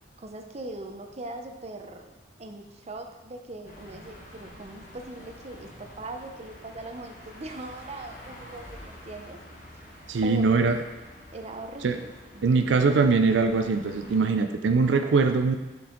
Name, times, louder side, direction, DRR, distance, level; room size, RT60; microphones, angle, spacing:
voice 1, 0.2-2.1 2.4-9.4 10.2-10.7 11.3-12.5, right 2 dB, 40° right, 5 dB, 0.7 m, -40 dB
sound 1, 3.6-14.2, left 1 dB, 45° left, 1.5 m, -48 dB
voice 2, 10.1-10.8 11.8-12.0 12.4-15.6, right 4 dB, 85° right, 7 dB, 0.5 m, -22 dB
6.9 x 5.3 x 3.9 m, 1.2 s
head